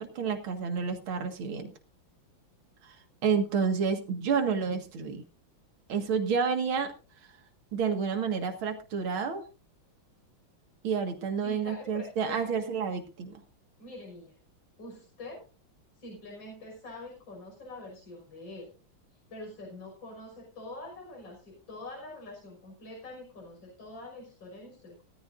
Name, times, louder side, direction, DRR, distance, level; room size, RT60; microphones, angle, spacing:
voice 1, 0.0-1.7 3.2-5.2 5.9-6.9 7.7-9.4 10.8-13.4, right 6 dB, 80° right, 5 dB, 2.6 m, -29 dB
voice 2, 11.4-12.6 13.8-14.4 14.8-15.4 16.0-18.7 19.3-25.0, left 2 dB, 65° left, 0 dB, 6.3 m, -45 dB
18.5 x 14.0 x 2.6 m, 0.33 s
omnidirectional pair, 2.3 m